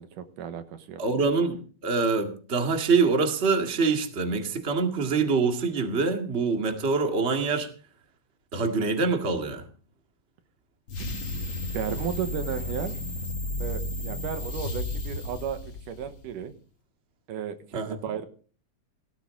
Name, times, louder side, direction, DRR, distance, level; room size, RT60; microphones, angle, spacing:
voice 1, 0.0-1.0 11.0-11.3 11.7-13.0 13.6-16.5 17.3-18.3, right 8 dB, 85° right, 9 dB, 2.8 m, -34 dB
voice 2, 1.0-7.7 8.5-9.6 17.7-18.0, right 4 dB, 25° right, 4 dB, 1.7 m, -25 dB
sound 1, 10.9-16.3, left 1 dB, 45° left, 2.1 m, -33 dB
17.5 x 13.5 x 3.8 m, 0.41 s
omnidirectional pair, 3.6 m